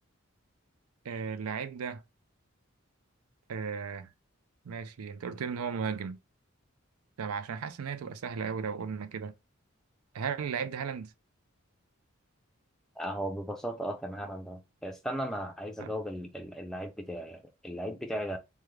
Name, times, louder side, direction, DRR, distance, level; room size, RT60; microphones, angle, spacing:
voice 1, 1.0-2.0 3.5-4.1 4.7-6.2 7.2-9.3 10.1-11.1 15.8-15.9, right 6 dB, 85° right, 0.4 m, -35 dB
voice 2, 13.0-18.4, equal, ahead, 0.4 m, -36 dB
3.5 x 2.1 x 3.1 m
head